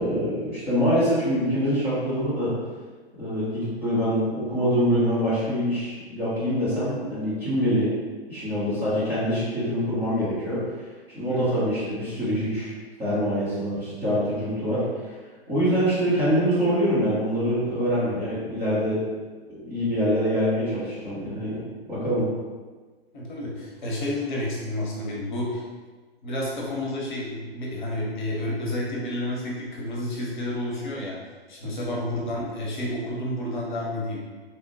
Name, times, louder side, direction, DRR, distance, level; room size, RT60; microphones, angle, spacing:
voice 1, 0.0-2.5 3.2-7.9 8.3-10.6 11.1-12.7 13.0-14.9 15.5-19.0 19.6-21.6 21.9-22.3, equal, 5° right, -13 dB, 0.5 m, -24 dB
voice 2, 11.3-11.6 23.1-25.6 26.2-31.2 31.5-34.2, left 1 dB, 45° left, -3 dB, 0.8 m, -30 dB
3.2 x 2.1 x 2.9 m, 1.4 s
figure-of-eight pair, 115°, 32 cm